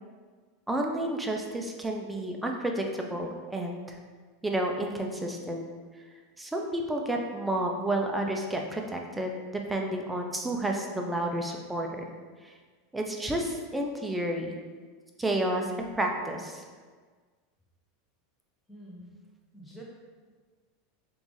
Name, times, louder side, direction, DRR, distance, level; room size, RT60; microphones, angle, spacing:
voice 1, 0.7-4.0 4.4-5.6 6.4-12.0 12.4-12.5 12.9-14.6 15.2-16.6, right 1 dB, 10° right, 1 dB, 0.5 m, -31 dB
voice 2, 18.7-19.1 19.5-19.8, right 1 dB, 10° left, -3 dB, 0.9 m, -46 dB
3.3 x 2.5 x 3.3 m, 1.5 s
hypercardioid pair, 105°, 0 cm